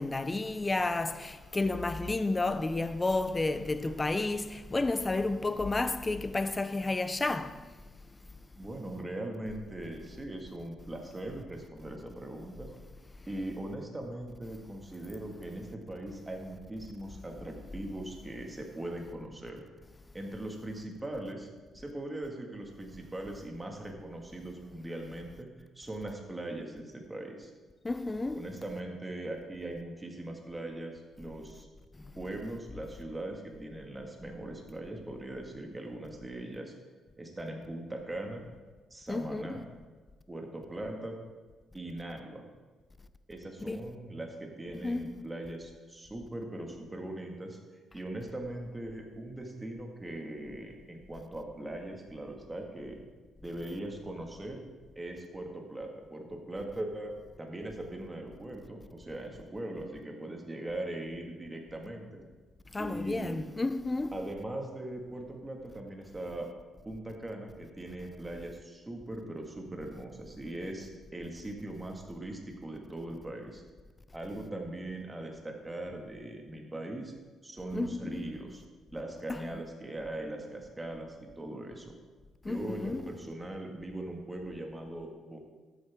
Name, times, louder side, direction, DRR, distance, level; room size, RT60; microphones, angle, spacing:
voice 1, 0.0-7.6 27.8-28.5 39.1-39.6 43.7-43.8 44.8-45.2 62.7-64.2 77.7-78.2 79.3-79.5 82.4-83.1, left 2 dB, 20° left, 0.6 m, -31 dB
voice 2, 8.6-12.7 13.3-19.6 20.1-21.5 21.7-25.5 25.8-27.5 28.3-31.7 32.2-36.7 37.2-38.5 38.9-39.6 40.3-41.2 41.7-42.5 43.3-47.6 47.9-53.0 53.4-54.6 55.0-62.2 62.8-63.4 64.1-66.5 66.8-73.6 74.1-77.1 77.4-78.6 78.9-81.9 82.5-85.4, right 1 dB, 15° right, 1.9 m, -40 dB
13.0 x 8.4 x 3.6 m
cardioid pair, 90°, 0 cm